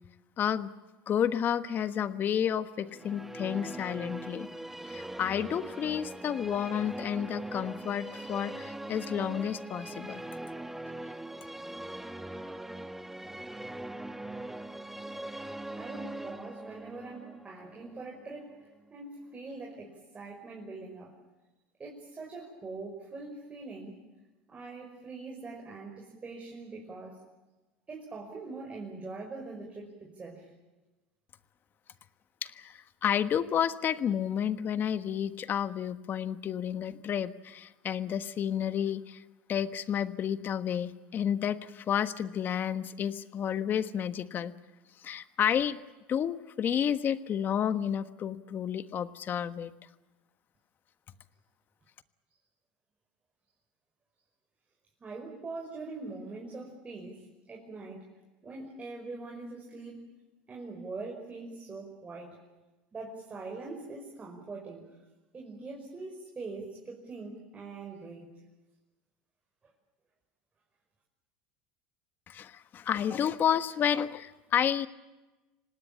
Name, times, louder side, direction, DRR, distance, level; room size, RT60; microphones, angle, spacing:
voice 1, 0.4-0.7 1.1-4.5 4.9-10.2 32.4-39.2 39.5-44.5 45.0-45.8 46.1-49.7 72.3-74.9, left 9 dB, 40° left, 11 dB, 1.3 m, -31 dB
sound 1, 2.8-18.9, right 1 dB, 5° right, 1.4 m, -41 dB
voice 2, 15.8-21.1 21.8-24.0 24.5-27.2 27.9-30.5 55.0-58.1 58.4-60.0 60.5-62.4 62.9-64.9 65.3-68.3, right 3 dB, 25° right, 0 dB, 5.5 m, -43 dB
26.0 x 19.0 x 8.9 m, 1.1 s
supercardioid pair, 100°, 5 cm